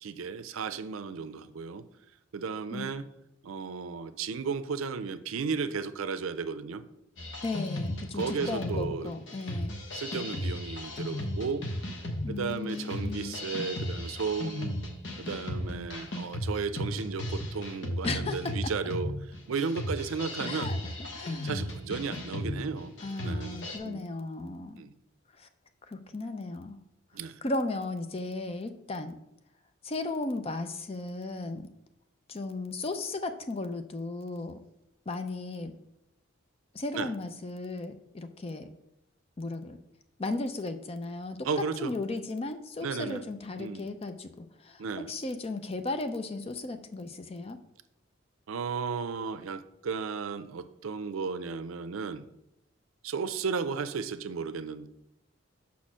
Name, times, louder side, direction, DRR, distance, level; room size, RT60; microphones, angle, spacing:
voice 1, 0.0-1.8 2.3-3.0 3.4-6.8 8.1-9.1 9.9-11.6 12.3-14.8 15.2-20.7 21.4-23.0 23.2-23.6 23.8-24.0 24.8-24.9 27.1-27.4 36.9-37.1 41.4-41.9 42.8-43.2 43.6-43.9 44.8-45.1 48.5-52.3 53.0-54.9, right 5 dB, 85° right, 12 dB, 0.5 m, -34 dB
sound 1, 7.2-23.8, left 1 dB, 65° left, 1.0 m, -36 dB
voice 2, 7.4-9.8 12.2-13.4 18.0-18.5 20.4-20.8 21.1-21.5 23.0-24.8 25.4-25.5 25.9-26.8 27.4-29.2 29.8-31.7 32.3-34.6 35.1-35.8 36.7-38.7 39.4-39.8 40.2-41.4 41.8-47.6, left 2 dB, 30° left, 8 dB, 0.5 m, -35 dB
5.7 x 4.3 x 6.1 m, 0.83 s
head